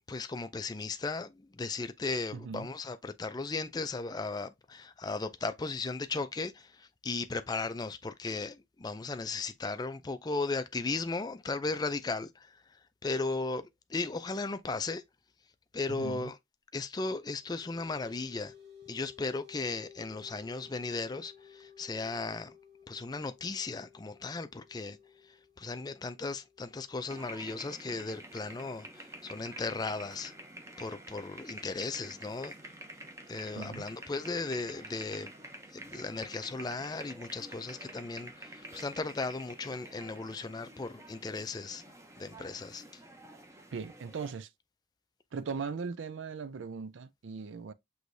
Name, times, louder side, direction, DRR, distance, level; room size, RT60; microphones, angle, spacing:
voice 1, 0.1-12.5 13.0-15.0 15.7-16.4 16.7-18.5 18.9-22.5 22.9-25.0 25.6-30.3 30.8-32.7 33.3-35.3 35.7-41.8 42.2-42.8, left 3 dB, 20° left, 0.4 m, -36 dB
voice 2, 2.3-2.7 15.9-16.3 33.5-33.9 43.7-44.5 45.3-47.7, right 5 dB, 80° right, 0.4 m, -39 dB
sound 1, 17.2-28.1, left 7 dB, 60° right, 1.3 m, -57 dB
sound 2, 27.1-44.3, right 1 dB, 15° right, 0.7 m, -49 dB
6.3 x 3.1 x 2.6 m
head